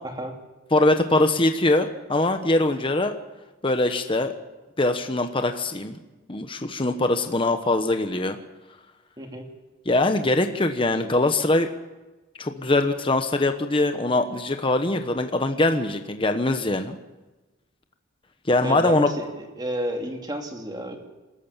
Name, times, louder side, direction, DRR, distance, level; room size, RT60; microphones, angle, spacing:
voice 1, 0.0-0.3 9.2-9.5 18.6-21.0, equal, 20° right, 3 dB, 2.8 m, -31 dB
voice 2, 0.7-3.2 3.6-4.3 4.8-6.0 6.3-8.4 9.9-11.7 12.4-17.0 18.5-19.1, left 2 dB, 25° left, 7 dB, 1.1 m, -22 dB
27.0 x 13.5 x 7.4 m, 1.1 s
head